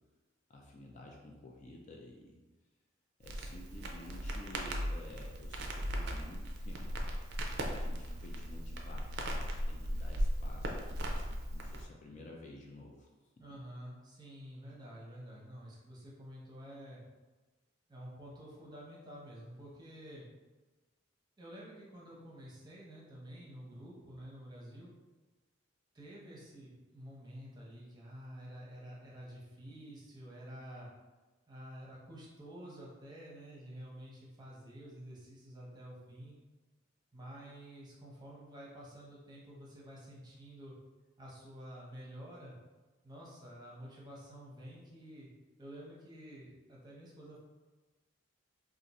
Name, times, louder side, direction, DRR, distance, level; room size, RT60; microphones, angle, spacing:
voice 1, 0.5-2.4 3.2-13.1 13.4-13.5, left 1 dB, 35° left, -1 dB, 0.4 m, -52 dB
Crackle, 3.2-11.9, equal, 55° right, 0.4 m, -37 dB
voice 2, 13.4-17.0 17.9-20.3 21.4-24.9 25.9-30.9 31.5-36.3 37.1-40.7 41.2-42.6 43.0-45.3 45.6-47.4, equal, 20° right, -5 dB, 0.8 m, -50 dB
2.5 x 2.5 x 4.1 m, 1.2 s
head